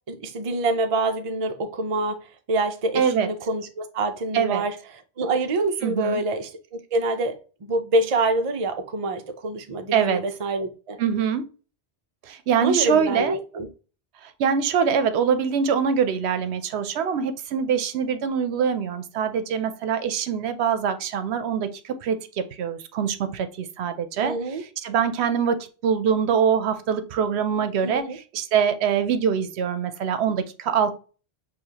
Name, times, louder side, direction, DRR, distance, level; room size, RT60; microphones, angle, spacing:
voice 1, 0.1-11.0 12.6-13.7 24.2-24.6 27.8-28.2, right 2 dB, 40° right, 0.5 m, -26 dB
voice 2, 2.9-3.3 4.3-4.6 5.8-6.2 9.9-10.2 11.0-11.5 12.2-13.4 14.2-24.4 24.8-25.6 25.8-30.9, right 7 dB, 80° right, 0.8 m, -24 dB
6.3 x 2.4 x 2.8 m
omnidirectional pair, 1.1 m